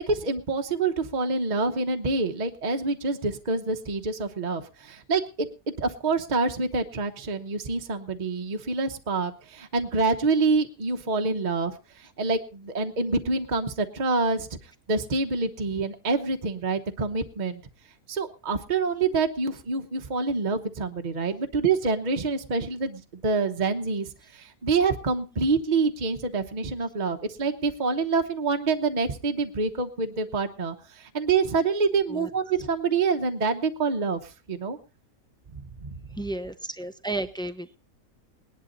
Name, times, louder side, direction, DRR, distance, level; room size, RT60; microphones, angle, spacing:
voice 1, 0.1-5.5 5.8-17.6 18.1-34.8 35.5-36.2, right 4 dB, 35° right, 5 dB, 1.1 m, -27 dB
voice 2, 36.2-37.8, right 2 dB, 5° left, 9 dB, 0.5 m, -33 dB
19.5 x 11.0 x 3.9 m, 0.33 s
omnidirectional pair, 1.5 m